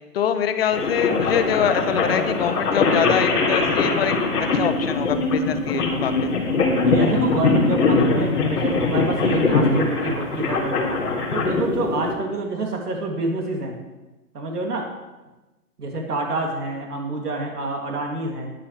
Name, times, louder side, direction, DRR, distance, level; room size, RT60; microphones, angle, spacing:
voice 1, 0.1-6.3, left 8 dB, 40° left, 9 dB, 1.0 m, -24 dB
sound 1, 0.7-12.1, left 3 dB, 75° left, 3.2 m, -21 dB
voice 2, 6.8-11.0 11.3-13.8 14.3-14.9 15.8-18.5, right 2 dB, 75° right, 0 dB, 3.0 m, -27 dB
19.5 x 7.1 x 3.4 m, 1.1 s
hypercardioid pair, 140°, 47 cm